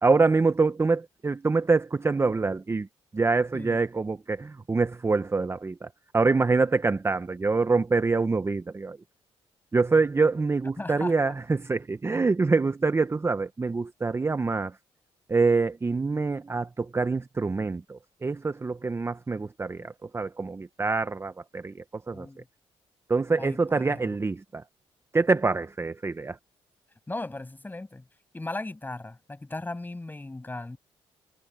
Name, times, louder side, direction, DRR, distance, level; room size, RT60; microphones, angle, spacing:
voice 1, 0.0-2.9 3.1-5.7 6.1-9.0 9.7-14.7 15.3-21.7 22.1-22.3 23.1-24.6 25.1-26.4, right 4 dB, 25° right, 0.9 m, -25 dB
voice 2, 10.8-11.1 19.8-19.9 22.1-22.5 23.3-24.2 27.1-28.0 28.3-30.8, left 2 dB, 15° left, 7.6 m, -37 dB
cardioid pair, 80°, 11 cm